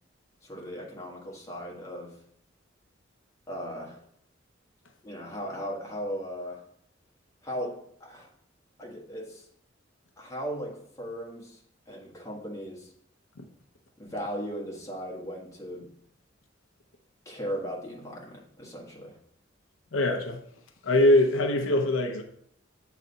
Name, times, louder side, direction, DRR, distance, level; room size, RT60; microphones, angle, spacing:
voice 1, 0.4-2.1 3.5-4.0 5.0-6.6 7.4-8.3 8.8-9.4 10.2-11.6 11.9-12.9 14.0-15.9 17.2-19.2, equal, 15° left, 1.4 m, -37 dB
voice 2, 19.9-20.4 20.8-22.2, left 1 dB, 90° left, 0.7 m, -22 dB
7.6 x 3.3 x 3.9 m
head